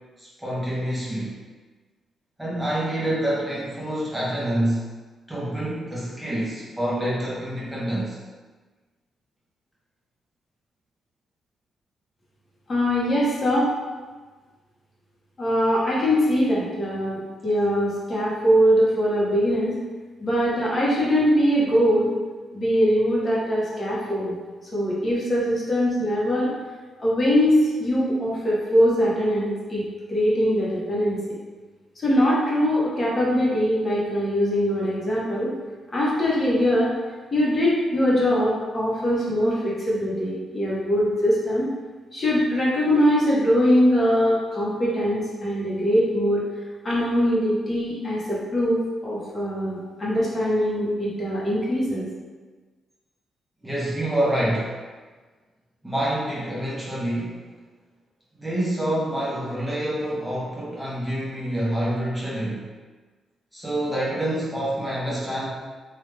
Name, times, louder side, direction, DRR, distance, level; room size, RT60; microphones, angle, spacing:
voice 1, 0.2-1.3 2.4-4.9 5.3-8.2 53.6-54.7 55.8-57.4 58.4-62.7 63.5-65.5, right 1 dB, 5° right, -7 dB, 0.7 m, -27 dB
voice 2, 12.7-13.7 15.4-19.7 20.2-22.1 22.5-24.3 24.7-26.5 27.0-31.4 32.0-35.5 35.9-36.9 37.3-41.7 42.1-46.4 46.8-52.1, equal, 35° left, -6 dB, 0.8 m, -22 dB
3.1 x 2.3 x 3.2 m, 1.4 s
cardioid pair, 125°, 0 cm